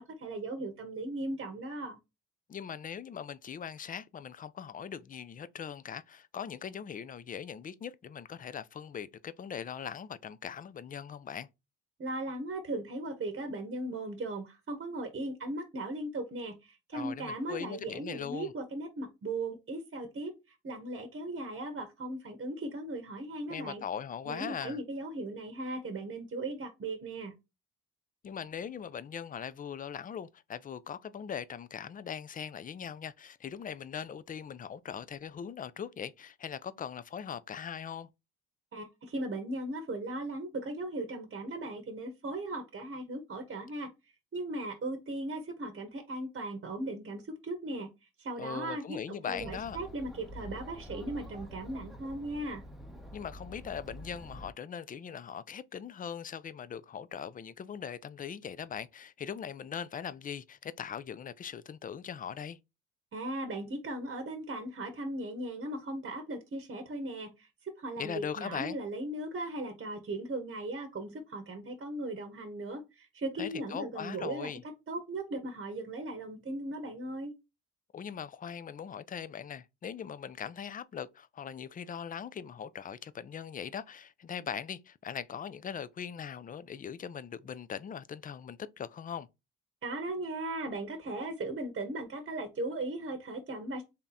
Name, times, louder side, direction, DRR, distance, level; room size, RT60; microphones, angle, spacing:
voice 1, 0.0-2.0 12.0-23.8 24.3-27.3 38.7-43.9 44.3-47.9 48.2-49.0 49.2-52.6 63.1-74.5 74.9-77.3 89.8-93.8, right 2 dB, 35° right, 0.9 m, -37 dB
voice 2, 2.5-11.5 16.9-18.5 23.5-24.8 28.2-38.1 48.4-49.8 53.1-62.6 68.0-68.8 73.4-74.6 77.9-89.3, left 8 dB, 25° left, 0.3 m, -40 dB
Chatter, 49.4-54.5, equal, ahead, 0.8 m, -47 dB
3.5 x 2.8 x 3.9 m
cardioid pair, 90°, 32 cm